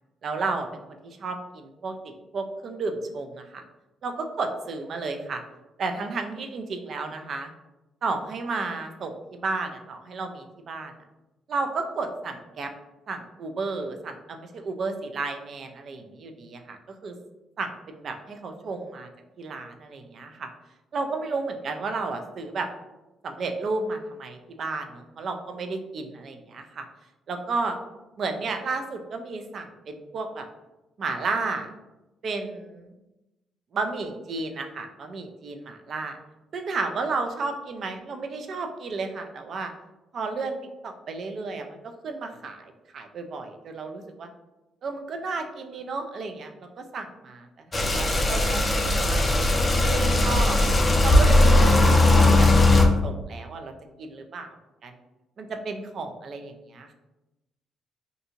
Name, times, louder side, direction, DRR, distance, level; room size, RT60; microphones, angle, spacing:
voice 1, 0.2-3.6 4.0-5.4 5.8-7.5 8.0-10.9 11.5-12.7 13.1-17.1 17.6-19.1 19.4-20.5 20.9-22.7 23.2-26.9 27.3-27.8 28.2-30.5 31.0-31.7 32.2-32.9 33.7-36.2 36.5-39.7 40.1-40.6 40.8-44.3 44.8-50.6 51.0-53.7 54.0-54.6 54.8-54.9 55.4-56.9, right 3 dB, 55° right, 5 dB, 0.3 m, -33 dB
sound 1, 47.7-52.8, left 2 dB, 25° left, 0.4 m, -18 dB
2.6 x 2.5 x 2.7 m, 1.0 s
cardioid pair, 90°, 0 cm